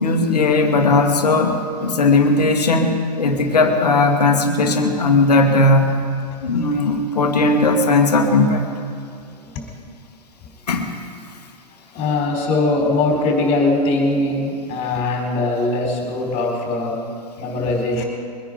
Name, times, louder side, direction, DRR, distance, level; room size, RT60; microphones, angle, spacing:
voice 1, 0.0-6.0 6.4-8.7 10.7-10.9, left 2 dB, 70° left, 4 dB, 2.0 m, -17 dB
voice 2, 11.9-18.0, left 2 dB, 30° left, 1 dB, 4.2 m, -21 dB
23.5 x 10.0 x 5.2 m, 2.5 s
figure-of-eight pair, 110°, 21 cm